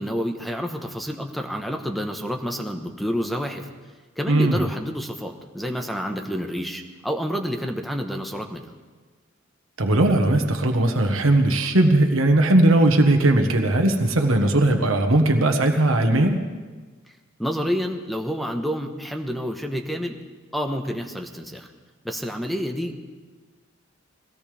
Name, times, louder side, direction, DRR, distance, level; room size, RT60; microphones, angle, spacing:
voice 1, 0.0-3.7 4.2-8.7 17.4-20.2 20.5-21.7 22.0-23.0, equal, ahead, 4 dB, 1.1 m, -29 dB
voice 2, 4.3-4.7 9.8-16.4, right 1 dB, 85° right, 4 dB, 1.3 m, -18 dB
22.0 x 17.0 x 3.4 m, 1.4 s
head